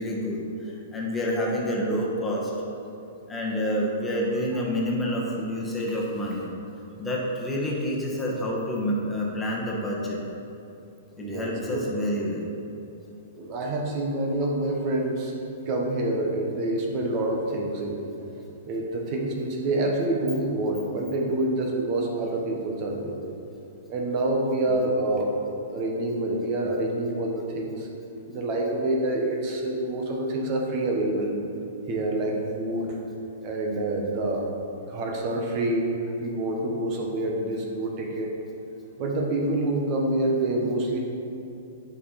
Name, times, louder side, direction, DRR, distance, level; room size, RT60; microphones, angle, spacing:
voice 1, 0.0-2.5 3.3-6.5 7.0-10.2 11.2-12.4, equal, 10° left, -4 dB, 1.4 m, -28 dB
voice 2, 11.2-11.8 13.3-15.3 15.7-18.0 18.7-23.2 23.9-27.9 28.3-31.3 31.9-33.0 33.4-34.6 34.9-35.9 36.2-38.3 39.0-41.0, right 1 dB, 40° right, 0 dB, 1.2 m, -27 dB
8.4 x 5.4 x 4.2 m, 2.7 s
hypercardioid pair, 125°, 0 cm